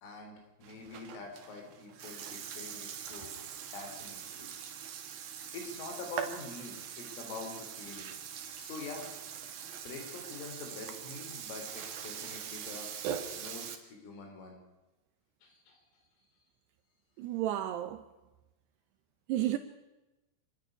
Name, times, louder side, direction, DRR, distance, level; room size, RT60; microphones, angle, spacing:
voice 1, 0.0-3.3 3.7-4.5 5.5-8.1 8.5-9.1 9.8-12.9 13.3-14.6 15.4-15.8, left 3 dB, 85° left, 6.3 m, -45 dB
Burping eructation, 0.6-13.8, right 8 dB, 60° right, 2.9 m, -42 dB
voice 2, 17.2-18.0 19.3-19.6, right 13 dB, 80° right, 2.5 m, -32 dB
27.5 x 10.0 x 9.9 m
omnidirectional pair, 5.6 m